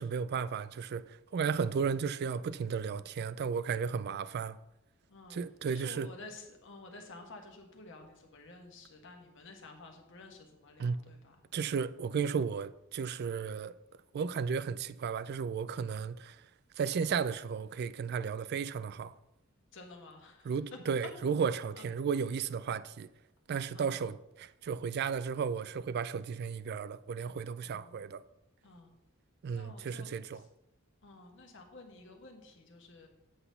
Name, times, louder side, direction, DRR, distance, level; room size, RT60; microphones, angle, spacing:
voice 1, 0.0-4.6 5.3-6.1 10.8-11.0 11.5-13.7 14.1-16.4 16.8-19.1 20.4-23.1 23.5-28.2 29.4-30.4, right 6 dB, 50° right, 0.3 m, -34 dB
voice 2, 5.7-11.4 19.7-20.5 21.7-21.8 23.7-24.0 27.6-28.0 28.6-29.0 29.5-30.4 31.0-33.1, left 3 dB, 65° left, 1.4 m, -52 dB
7.9 x 4.0 x 6.8 m
head